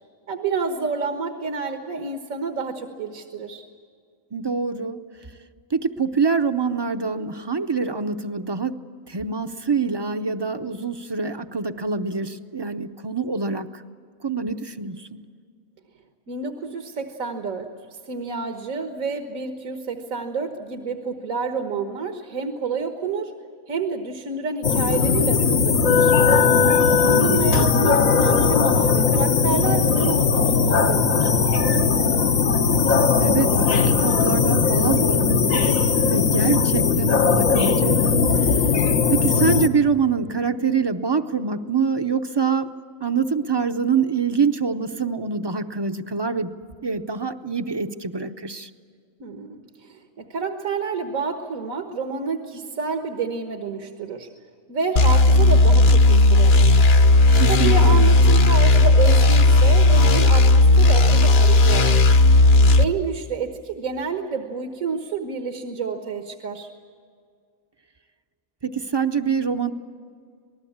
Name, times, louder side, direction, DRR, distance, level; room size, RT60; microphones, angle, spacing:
voice 1, 0.3-3.6 16.3-23.3 23.7-26.1 26.9-31.3 49.2-54.3 54.7-56.8 57.5-62.1 62.8-66.7, right 5 dB, 80° right, 5 dB, 1.8 m, -29 dB
voice 2, 4.3-5.0 5.7-8.8 9.1-13.8 14.2-15.3 27.0-27.6 33.2-38.6 39.1-42.7 43.0-46.5 46.8-48.7 57.3-58.1 68.6-69.7, right 5 dB, 30° right, 9 dB, 0.5 m, -25 dB
sound 1, 24.6-39.7, left 5 dB, 75° left, 1.5 m, -18 dB
sound 2, 55.0-62.8, left 2 dB, 50° left, 1.1 m, -14 dB
27.0 x 19.5 x 8.6 m, 2.1 s
omnidirectional pair, 1.4 m